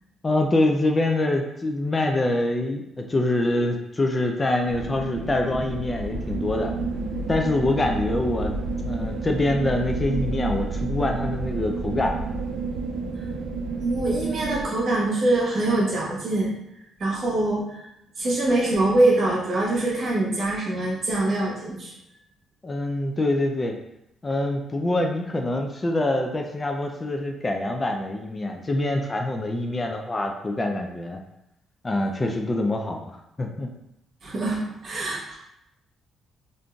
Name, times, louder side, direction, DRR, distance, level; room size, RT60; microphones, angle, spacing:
voice 1, 0.2-6.7 7.3-8.6 8.8-12.3 22.6-23.8 24.2-31.2 31.8-33.7, left 2 dB, 25° left, 3 dB, 0.4 m, -25 dB
sound 1, 4.6-14.7, right 3 dB, 85° right, 0.4 m, -30 dB
voice 2, 13.8-16.5 17.0-17.9 18.2-21.9 34.2-35.4, right 2 dB, 50° right, -4 dB, 1.0 m, -24 dB
3.6 x 2.5 x 2.3 m, 0.83 s
cardioid pair, 90°, 0 cm